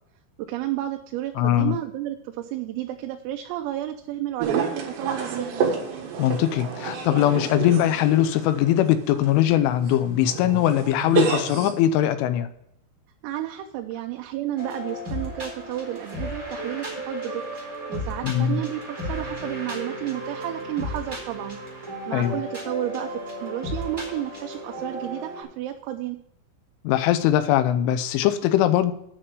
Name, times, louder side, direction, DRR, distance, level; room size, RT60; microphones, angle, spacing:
voice 1, 0.4-5.7 13.2-17.4 17.9-21.6 22.1-26.2, right 13 dB, 90° right, 3 dB, 3.4 m, -31 dB
voice 2, 1.4-1.8 6.2-12.5 18.2-18.6 22.1-22.4 26.8-28.9, left 12 dB, 80° left, 11 dB, 3.0 m, -21 dB
sound 1, 4.4-11.7, right 6 dB, 65° right, 3.5 m, -29 dB
sound 2, 14.6-25.4, equal, 5° right, 3.0 m, -34 dB
9.9 x 5.7 x 6.7 m, 0.75 s
omnidirectional pair, 5.9 m